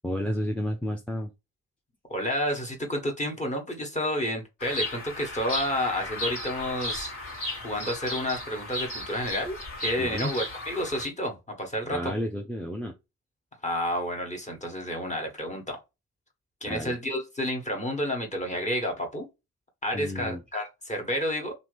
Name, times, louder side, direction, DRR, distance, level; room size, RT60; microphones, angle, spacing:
voice 1, 0.0-1.3 10.0-10.3 11.9-12.9 16.7-17.0 19.9-20.4, left 1 dB, 5° left, 0.5 m, -31 dB
voice 2, 2.1-7.1 7.6-12.2 13.6-15.8 16.6-19.3 19.8-21.5, equal, 20° left, 1.3 m, -30 dB
Bird vocalization bird call bird song, 4.6-11.1, left 1 dB, 60° left, 1.8 m, -35 dB
2.8 x 2.6 x 3.3 m
hypercardioid pair, 45°, 35 cm